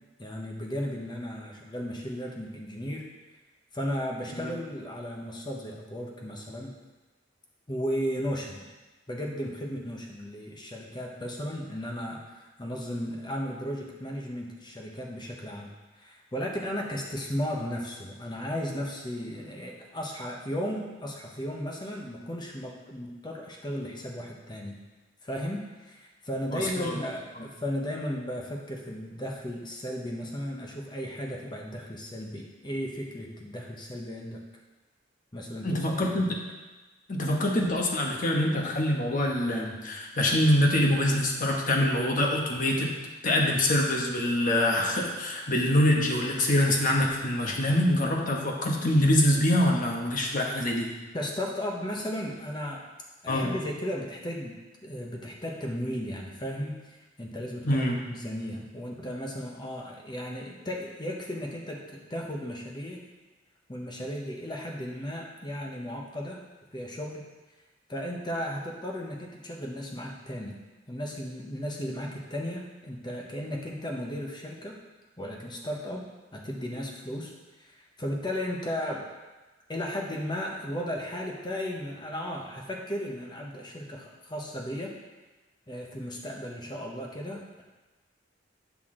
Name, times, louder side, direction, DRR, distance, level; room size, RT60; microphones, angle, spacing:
voice 1, 0.2-3.1 3.7-6.7 7.7-8.7 9.1-24.8 25.2-34.4 35.3-35.9 36.2-36.3 51.1-52.8 53.2-54.6 54.8-63.1 63.7-66.4 66.7-67.2 67.9-70.6 70.9-74.8 75.2-77.3 77.6-79.1 79.7-84.9 85.7-87.6, equal, 25° left, -1 dB, 1.0 m, -35 dB
voice 2, 26.5-27.0 35.6-36.2 37.1-42.9 43.2-50.9 53.3-53.5 57.6-57.9, left 1 dB, 45° left, 0 dB, 1.2 m, -25 dB
9.4 x 6.2 x 3.8 m, 1.2 s
head